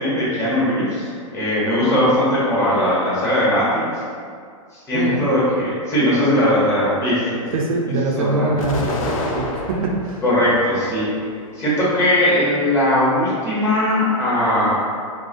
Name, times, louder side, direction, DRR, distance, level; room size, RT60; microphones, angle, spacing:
voice 1, 0.0-4.0 4.7-7.4 7.9-8.5 10.2-11.1 11.5-14.8, left 1 dB, 15° left, -10 dB, 0.8 m, -19 dB
voice 2, 7.5-10.2, right 2 dB, 90° right, 0 dB, 0.4 m, -23 dB
Explosion, 8.6-10.2 10.8-11.6, left 2 dB, 90° left, 0.4 m, -28 dB
2.4 x 2.0 x 2.5 m, 2.1 s
hypercardioid pair, 145°, 17 cm